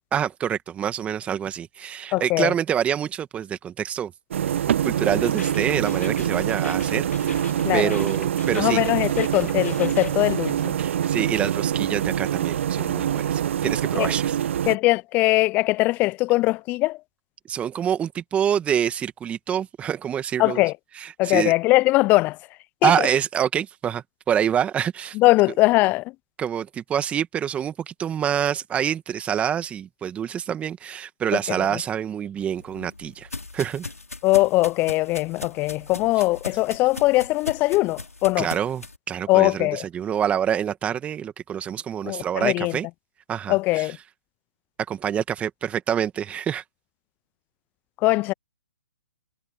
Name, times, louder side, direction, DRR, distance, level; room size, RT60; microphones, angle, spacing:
voice 1, 0.1-4.1 4.8-8.8 10.8-14.4 17.5-20.6 21.0-21.5 22.8-25.2 26.4-33.3 33.5-33.9 38.4-42.9 43.3-43.9 44.9-46.6, right 9 dB, 15° right, 2.1 m, -26 dB
voice 2, 2.1-2.5 7.6-7.9 8.5-10.7 13.9-14.1 14.7-17.0 20.4-20.7 21.2-22.4 22.8-23.1 25.1-26.1 31.5-31.8 34.2-38.5 39.3-39.8 42.0-42.8 43.5-44.0 48.0-48.3, left 20 dB, 20° left, 0.4 m, -21 dB
sound 1, 4.3-14.8, right 10 dB, 55° right, 0.6 m, -25 dB
sound 2, 5.1-10.1, left 5 dB, 75° left, 2.5 m, -40 dB
sound 3, 32.4-39.0, left 3 dB, 90° left, 4.8 m, -39 dB
figure-of-eight pair, 130°, 8 cm